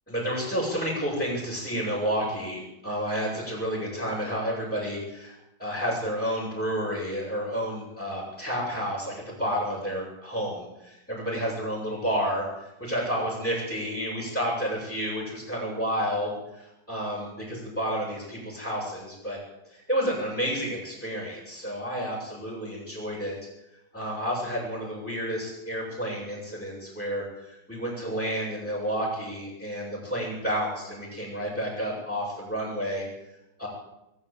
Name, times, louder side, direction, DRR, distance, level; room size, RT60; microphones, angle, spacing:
voice 1, 0.1-19.4 19.7-23.3 23.9-33.1 33.6-33.7, equal, 5° left, -8 dB, 7.5 m, -30 dB
22.0 x 13.5 x 8.8 m, 0.89 s
omnidirectional pair, 2.2 m